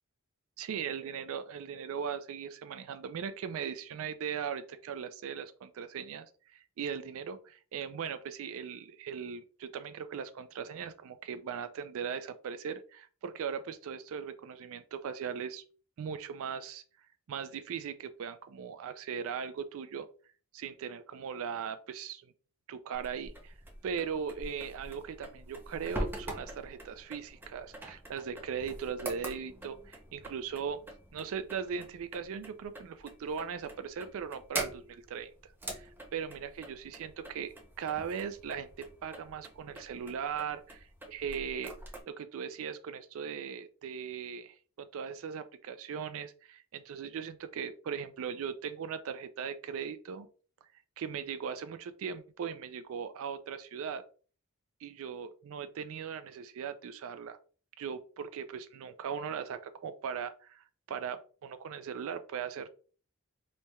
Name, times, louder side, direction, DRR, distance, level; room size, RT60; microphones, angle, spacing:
voice 1, 0.6-15.6 16.0-16.8 17.3-20.1 20.5-22.3 22.7-23.5 23.8-30.8 31.1-35.3 35.7-41.7 42.1-50.3 51.0-54.0 54.8-57.4 57.8-62.7, right 7 dB, 65° right, 10 dB, 0.3 m, -39 dB
sound 1, 22.9-42.0, right 1 dB, 10° right, 0.6 m, -44 dB
4.1 x 3.2 x 2.3 m, 0.40 s
head